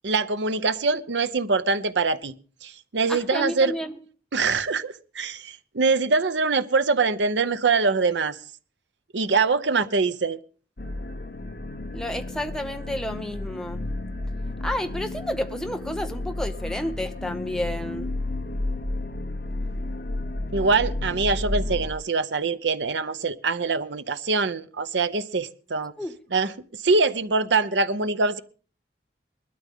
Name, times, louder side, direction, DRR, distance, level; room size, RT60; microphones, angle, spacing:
voice 1, 0.0-2.3 2.6-3.7 4.3-8.4 9.1-10.4 20.5-25.9 26.3-28.4, right 4 dB, 80° right, 0.7 m, -24 dB
voice 2, 3.1-4.0 11.9-13.9 14.6-18.1 26.0-26.1, left 1 dB, 5° left, 0.8 m, -31 dB
sound 1, 10.8-21.9, left 2 dB, 55° left, 1.0 m, -32 dB
20.5 x 12.5 x 3.7 m
head